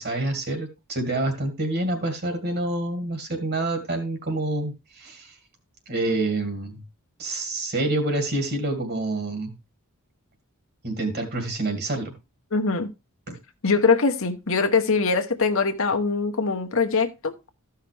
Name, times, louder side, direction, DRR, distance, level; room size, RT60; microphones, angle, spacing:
voice 1, 0.0-5.4 5.9-6.8 7.2-9.6 10.8-12.1 13.3-13.4, right 2 dB, 45° right, 2.3 m, -27 dB
voice 2, 12.5-12.9 13.6-17.3, left 4 dB, 60° left, 1.1 m, -22 dB
14.0 x 5.8 x 3.4 m
head